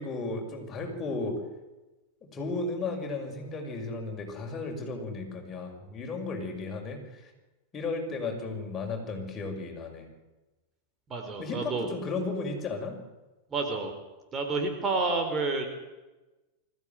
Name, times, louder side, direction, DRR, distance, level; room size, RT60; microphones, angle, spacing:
voice 1, 0.0-1.4 2.3-7.3 7.7-10.1 11.4-13.0, left 3 dB, 25° left, 2 dB, 6.3 m, -34 dB
voice 2, 11.1-11.9 13.5-13.9 14.3-15.7, right 3 dB, 25° right, 4 dB, 4.3 m, -29 dB
24.5 x 15.5 x 9.4 m, 1.1 s
figure-of-eight pair, 90°, 0 cm